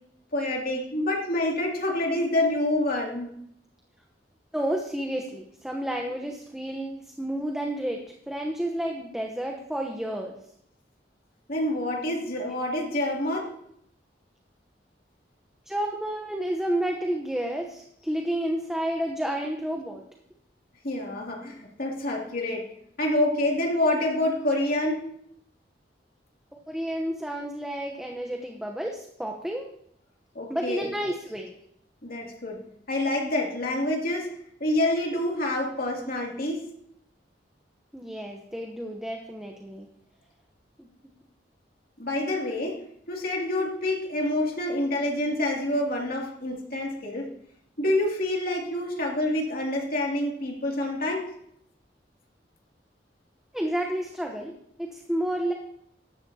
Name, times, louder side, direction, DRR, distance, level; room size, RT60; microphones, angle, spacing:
voice 1, 0.3-3.3 11.5-13.5 20.8-22.7 23.0-25.0 30.3-30.9 32.0-32.6 32.9-34.3 34.6-36.6 42.0-42.8 43.1-47.3 47.8-51.3, left 1 dB, 55° left, -1 dB, 2.6 m, -27 dB
voice 2, 4.5-10.4 15.7-20.0 26.7-29.7 30.5-31.6 37.9-39.9 40.8-40.9 53.5-54.5 54.8-55.5, right 1 dB, 5° right, 1 dB, 0.9 m, -30 dB
14.0 x 11.0 x 2.8 m, 0.71 s
head